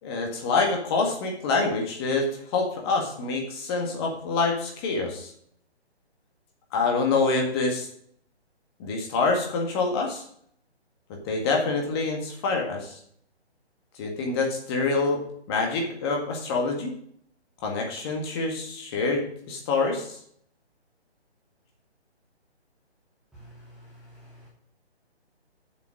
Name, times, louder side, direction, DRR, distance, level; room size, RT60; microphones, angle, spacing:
voice 1, 0.0-5.3 6.7-7.9 8.8-10.2 11.2-13.0 14.0-15.2 15.5-16.9 17.6-20.2, left 3 dB, 20° left, 1 dB, 1.8 m, -26 dB
voice 2, 23.3-24.5, equal, ahead, -8 dB, 1.0 m, -49 dB
7.3 x 7.3 x 6.2 m, 0.66 s
hypercardioid pair, 155°, 33 cm